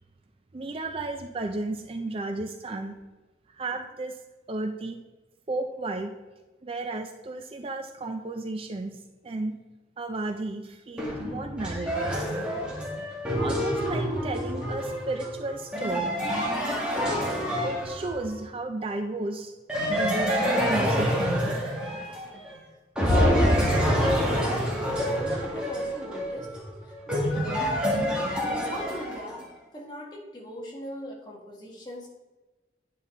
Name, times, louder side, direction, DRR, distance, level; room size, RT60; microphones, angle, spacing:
voice 1, 0.5-3.0 3.5-4.2 4.5-5.0 5.5-6.2 6.6-9.6 10.0-12.1 13.3-16.2 17.6-22.6, right 2 dB, 30° right, 6 dB, 0.4 m, -34 dB
sound 1, 11.0-18.4 19.7-22.5 23.0-29.4, equal, 5° right, 1.8 m, -27 dB
voice 2, 23.0-23.7 24.3-26.5 26.8-27.9 28.5-29.4 29.7-32.1, equal, 25° left, -2 dB, 1.5 m, -39 dB
9.2 x 5.5 x 3.8 m, 1.2 s
head